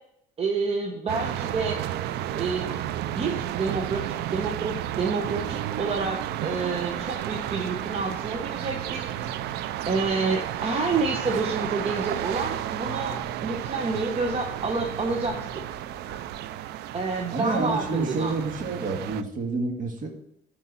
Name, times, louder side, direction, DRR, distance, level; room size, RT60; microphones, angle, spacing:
voice 1, 0.4-1.8 2.3-2.8 3.1-4.0 4.3-9.5 9.9-15.6 16.9-18.3, right 4 dB, 35° right, 2 dB, 1.0 m, -29 dB
sound 1, 1.1-19.2, right 12 dB, 75° right, 0.5 m, -32 dB
sound 2, 1.2-16.4, equal, 20° right, 2.8 m, -50 dB
voice 2, 17.3-20.1, right 3 dB, 50° right, 3 dB, 1.9 m, -28 dB
10.0 x 4.6 x 5.7 m, 0.78 s
cardioid pair, 110°, 17 cm